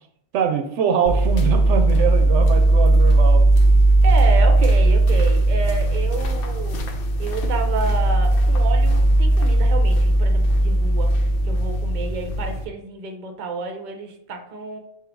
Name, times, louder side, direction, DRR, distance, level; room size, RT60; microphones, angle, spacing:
voice 1, 0.3-3.4, right 7 dB, 80° right, 6 dB, 0.9 m, -23 dB
sound 1, 1.1-12.6, right 1 dB, 60° left, 0.7 m, -17 dB
voice 2, 4.0-14.8, right 4 dB, 45° right, 4 dB, 0.7 m, -30 dB
3.9 x 2.8 x 4.5 m, 0.74 s
omnidirectional pair, 1.2 m